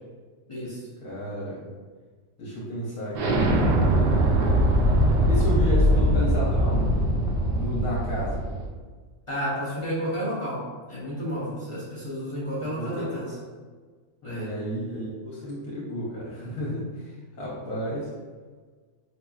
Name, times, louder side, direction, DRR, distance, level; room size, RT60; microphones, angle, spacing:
voice 1, 0.5-0.8 9.3-13.4 14.2-14.6, equal, 25° left, -10 dB, 0.7 m, -31 dB
voice 2, 1.0-1.7 2.4-4.3 5.2-7.0 7.5-8.4 12.7-13.4 14.2-18.1, equal, 75° left, -6 dB, 1.3 m, -32 dB
Explosion, 3.1-8.7, right 1 dB, 75° right, 0.5 m, -21 dB
4.9 x 2.7 x 2.3 m, 1.5 s
omnidirectional pair, 1.5 m